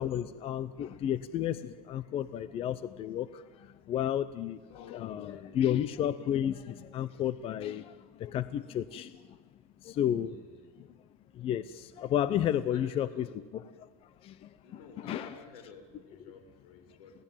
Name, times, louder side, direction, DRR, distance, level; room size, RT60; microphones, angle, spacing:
voice 1, 0.0-9.4 9.8-10.4 10.8-10.9 11.3-13.3 13.5-15.3, left 10 dB, 30° left, 15 dB, 0.7 m, -32 dB
voice 2, 4.7-5.8 10.2-10.7 12.7-13.4 14.6-17.1, left 5 dB, 85° left, 7 dB, 6.1 m, -52 dB
28.0 x 17.5 x 9.1 m, 1.4 s
supercardioid pair, 155°, 18 cm